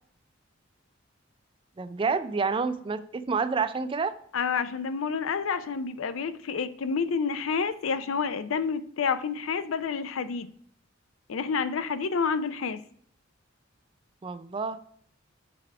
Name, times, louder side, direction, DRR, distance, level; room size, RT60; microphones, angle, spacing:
voice 1, 1.8-4.1 14.2-14.8, right 5 dB, 25° right, 0.3 m, -28 dB
voice 2, 4.3-10.5 11.3-12.8, left 5 dB, 85° left, 0.5 m, -29 dB
6.8 x 3.5 x 4.6 m
head